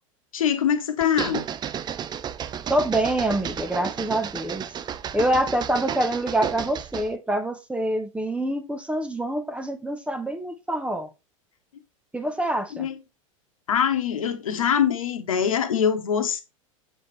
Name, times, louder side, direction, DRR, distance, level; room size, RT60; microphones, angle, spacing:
voice 1, 0.3-1.5 12.7-13.0 13.7-16.4, left 8 dB, 80° left, 1.2 m, -23 dB
sound 1, 1.0-7.1, right 9 dB, 25° right, 0.5 m, -32 dB
voice 2, 2.7-4.6 5.1-11.1 12.1-12.9, right 1 dB, 5° right, 1.1 m, -26 dB
7.3 x 4.1 x 3.3 m
hypercardioid pair, 95°, 17 cm